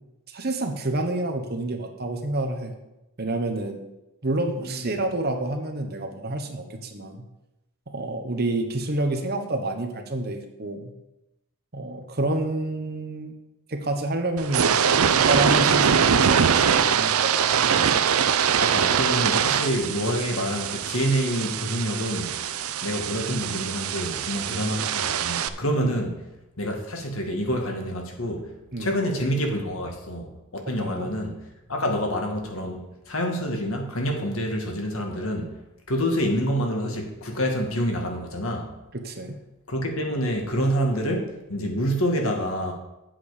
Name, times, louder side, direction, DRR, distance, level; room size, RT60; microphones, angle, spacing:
voice 1, 0.3-2.7 3.2-3.8 4.2-7.2 7.9-10.9 11.7-13.3 13.7-17.9 24.5-24.7 25.8-26.0 28.7-28.9 30.8-31.0 38.9-39.4, right 2 dB, 45° right, 5 dB, 1.1 m, -29 dB
voice 2, 4.6-4.9 18.6-26.2 26.6-28.5 28.8-35.5 35.9-38.7 39.7-42.7, equal, 70° left, 2 dB, 1.9 m, -27 dB
sound 1, 14.4-25.5, right 7 dB, 80° right, 0.6 m, -23 dB
9.0 x 7.7 x 5.0 m, 0.95 s
head